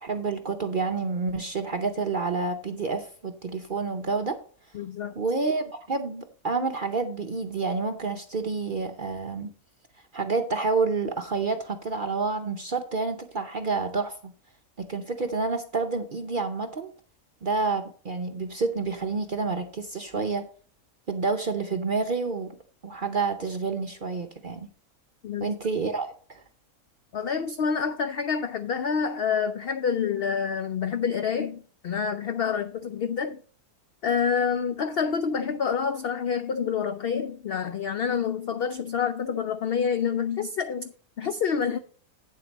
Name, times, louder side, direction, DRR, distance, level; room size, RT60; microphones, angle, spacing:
voice 1, 0.0-4.4 5.2-9.5 10.1-14.3 14.8-16.9 17.4-20.5 21.1-22.5 22.8-24.7 25.4-26.4, right 4 dB, 45° right, 0.7 m, -29 dB
voice 2, 4.7-5.2 25.2-25.5 27.1-33.4 34.0-41.8, left 6 dB, 75° left, 0.5 m, -27 dB
8.7 x 7.8 x 4.0 m
omnidirectional pair, 1.6 m